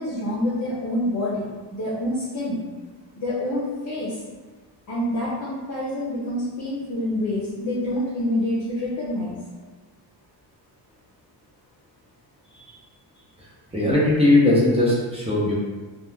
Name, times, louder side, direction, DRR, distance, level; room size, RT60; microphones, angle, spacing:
voice 1, 0.0-2.6 3.2-4.2 4.9-9.4 12.5-12.8, left 1 dB, 40° left, -8 dB, 0.7 m, -27 dB
voice 2, 13.4-15.5, left 2 dB, 15° right, -6 dB, 0.7 m, -19 dB
2.4 x 2.2 x 3.1 m, 1.3 s
cardioid pair, 115°, 45 cm